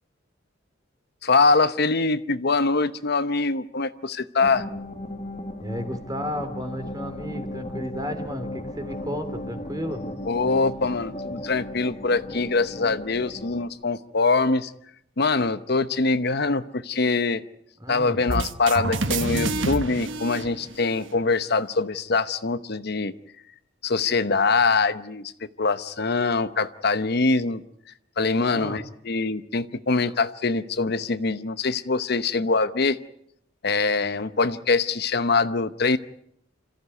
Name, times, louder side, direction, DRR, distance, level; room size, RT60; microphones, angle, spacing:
voice 1, 1.2-4.7 10.3-14.7 15.2-17.4 17.9-23.1 23.8-25.3 25.6-27.6 28.2-33.0 33.6-36.0, left 3 dB, 55° left, 11 dB, 0.9 m, -23 dB
sound 1, 4.4-13.7, left 1 dB, 35° left, 1.9 m, -36 dB
voice 2, 5.6-10.1 17.8-18.2 28.5-28.8, equal, 20° right, 7 dB, 3.2 m, -33 dB
sound 2, 18.3-21.2, right 3 dB, 75° right, 1.4 m, -28 dB
27.5 x 14.5 x 9.5 m, 0.71 s
head